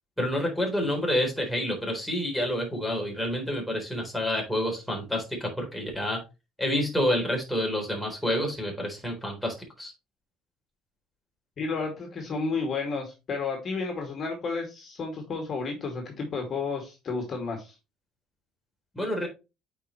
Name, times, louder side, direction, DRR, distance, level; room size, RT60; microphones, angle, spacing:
voice 1, 0.2-6.2 6.6-9.9 18.9-19.3, equal, ahead, -1 dB, 3.7 m, -28 dB
voice 2, 11.6-17.8, left 4 dB, 45° left, 1 dB, 2.3 m, -32 dB
8.3 x 5.0 x 3.1 m, 0.27 s
supercardioid pair, 85°, 0 cm